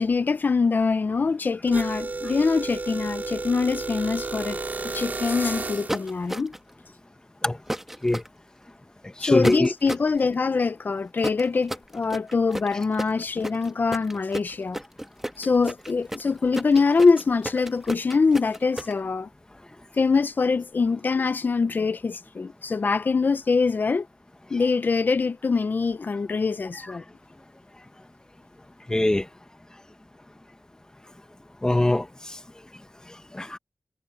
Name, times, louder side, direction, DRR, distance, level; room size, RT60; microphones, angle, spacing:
voice 1, 0.0-6.5 9.2-14.8 15.4-19.3 20.0-24.1 24.5-27.0, left 4 dB, 60° left, 0.8 m, -24 dB
sound 1, 1.7-6.1, right 3 dB, 50° right, 2.5 m, -32 dB
sound 2, 5.9-6.7 7.7-8.3 9.4-10.1 11.2-18.9, right 1 dB, 10° right, 1.4 m, -32 dB
voice 2, 9.0-9.7 28.9-29.3 31.6-32.4 33.1-33.6, left 1 dB, 20° left, 1.6 m, -23 dB
wide cardioid pair, 65°, 4 cm